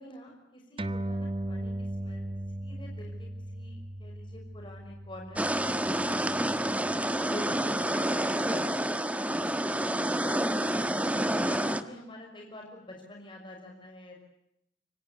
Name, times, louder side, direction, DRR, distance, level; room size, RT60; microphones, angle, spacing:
voice 1, 0.0-2.3 2.6-5.6 7.3-10.7 11.3-14.2, left 1 dB, 25° left, 0 dB, 6.0 m, -47 dB
sound 1, 0.8-7.6, right 1 dB, 30° right, 1.4 m, -38 dB
sound 2, 5.4-11.8, right 1 dB, 10° right, 1.4 m, -28 dB
27.5 x 24.5 x 8.2 m, 0.81 s
head